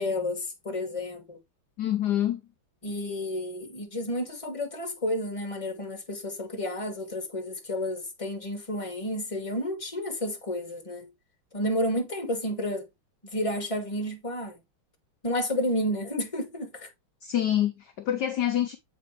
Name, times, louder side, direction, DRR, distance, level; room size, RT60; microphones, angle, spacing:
voice 1, 0.0-1.4 2.8-11.1 11.5-12.8 13.3-14.5 15.2-16.9, left 1 dB, 15° left, 1.7 m, -31 dB
voice 2, 1.8-2.4 17.2-18.8, left 11 dB, 65° left, 1.2 m, -26 dB
7.6 x 5.1 x 3.2 m
omnidirectional pair, 2.3 m